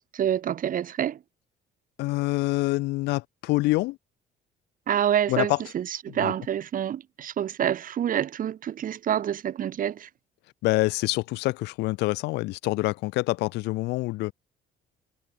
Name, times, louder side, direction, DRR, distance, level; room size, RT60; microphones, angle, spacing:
voice 1, 0.1-1.2 4.9-10.1, right 10 dB, 55° right, 5.6 m, -27 dB
voice 2, 2.0-4.0 5.3-5.6 6.2-6.3 10.6-14.3, left 20 dB, 90° left, 1.7 m, -26 dB
cardioid pair, 110°, 17 cm